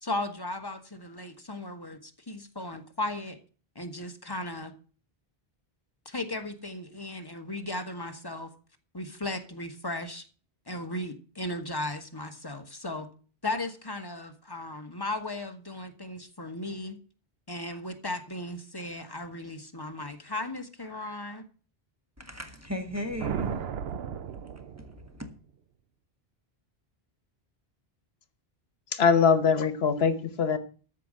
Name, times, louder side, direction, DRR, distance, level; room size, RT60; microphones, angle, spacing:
voice 1, 0.0-3.4 3.7-4.7 6.0-8.5 8.9-10.2 10.7-13.1 13.4-17.0 17.5-21.5, left 2 dB, 25° left, 1.3 m, -36 dB
voice 2, 22.2-25.3, right 1 dB, 15° right, 1.8 m, -38 dB
sound 1, 22.8-25.3, right 8 dB, 80° right, 0.9 m, -35 dB
voice 3, 28.9-30.6, left 6 dB, 80° left, 1.2 m, -22 dB
13.5 x 5.2 x 7.5 m
omnidirectional pair, 1.0 m